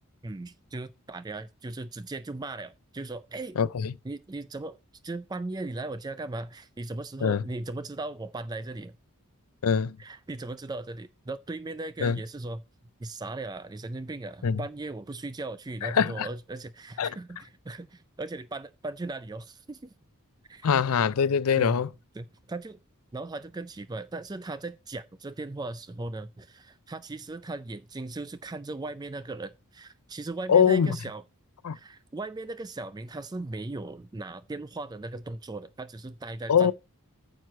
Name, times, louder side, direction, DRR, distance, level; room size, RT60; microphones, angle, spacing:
voice 1, 0.2-3.6 4.0-4.8 5.0-8.9 10.0-12.6 13.0-19.9 20.5-20.7 21.6-21.8 22.1-22.8 23.1-31.2 31.7-36.7, right 2 dB, 20° right, 0.4 m, -38 dB
voice 2, 3.6-3.9 7.2-7.4 9.6-10.0 12.0-12.2 14.4-14.6 15.8-16.3 17.0-17.1 20.6-21.9 30.5-31.0 31.6-31.8 36.5-36.7, left 7 dB, 75° left, 0.5 m, -23 dB
9.3 x 6.1 x 4.3 m
head